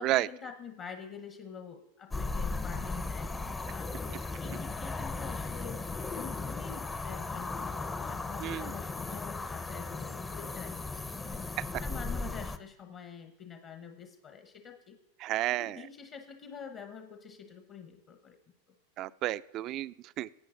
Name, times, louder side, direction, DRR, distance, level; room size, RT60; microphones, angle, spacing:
voice 1, 0.0-5.8 6.1-15.0 15.5-18.4, left 6 dB, 40° left, 6 dB, 1.0 m, -47 dB
sound 1, 2.1-12.6, left 3 dB, 15° left, 0.6 m, -36 dB
voice 2, 15.2-15.8 19.0-20.3, right 15 dB, 45° right, 16 dB, 0.4 m, -31 dB
17.0 x 8.3 x 2.6 m, 0.91 s
hypercardioid pair, 100°, 0 cm